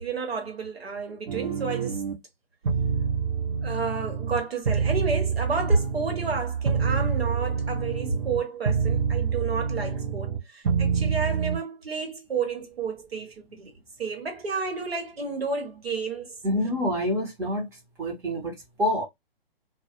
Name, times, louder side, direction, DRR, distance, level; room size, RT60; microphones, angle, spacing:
voice 1, 0.0-2.1 3.6-16.3, right 4 dB, 80° right, 1.1 m, -31 dB
sound 1, 1.3-2.1 2.6-4.4 4.6-8.4 8.6-10.4 10.6-11.6, right 6 dB, 65° right, 0.8 m, -27 dB
voice 2, 16.4-17.7 18.0-18.5 18.8-19.0, left 1 dB, 10° right, 0.6 m, -26 dB
2.2 x 2.1 x 2.8 m
hypercardioid pair, 135°, 30 cm